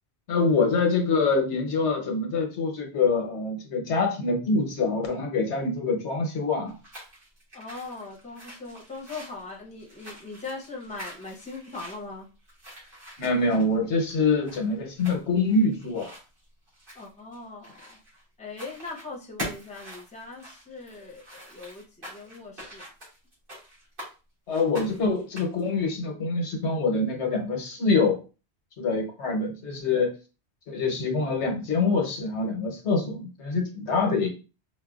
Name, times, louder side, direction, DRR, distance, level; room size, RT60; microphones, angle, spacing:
voice 1, 0.3-6.7 13.2-16.1 24.5-28.2 28.8-30.1 30.7-34.3, left 3 dB, 85° left, 3 dB, 1.2 m, -25 dB
sound 1, 6.6-18.2 18.5-19.1 19.4-24.1 24.5-25.7, equal, 55° right, 2.2 m, -44 dB
voice 2, 7.5-12.3 16.9-18.0 18.4-22.9 34.1-34.3, left 3 dB, 10° left, -2 dB, 0.7 m, -40 dB
4.8 x 2.2 x 2.3 m, 0.33 s
omnidirectional pair, 1.1 m